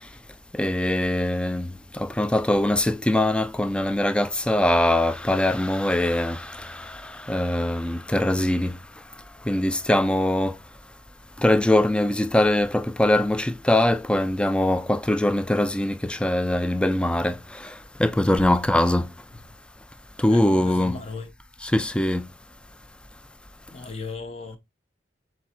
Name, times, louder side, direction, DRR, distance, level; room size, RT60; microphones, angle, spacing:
voice 1, 0.5-8.8 9.5-10.6 11.4-19.1 20.2-21.0 21.6-22.3, left 1 dB, 5° left, 0.3 m, -22 dB
voice 2, 20.3-21.3 23.7-24.6, left 4 dB, 35° left, 0.8 m, -36 dB
7.1 x 2.6 x 2.8 m
head